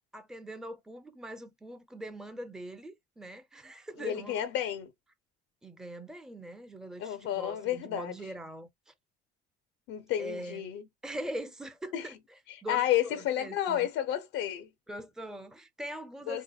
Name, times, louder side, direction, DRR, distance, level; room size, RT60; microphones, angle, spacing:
voice 1, 0.0-4.5 5.6-8.7 10.2-10.6 11.0-13.9 14.9-16.4, right 1 dB, 5° right, 0.6 m, -42 dB
voice 2, 4.0-4.9 7.0-8.1 9.9-10.9 11.9-12.1 12.5-14.7 16.3-16.4, left 11 dB, 75° left, 0.5 m, -31 dB
3.5 x 2.8 x 2.3 m
cardioid pair, 105°, 21 cm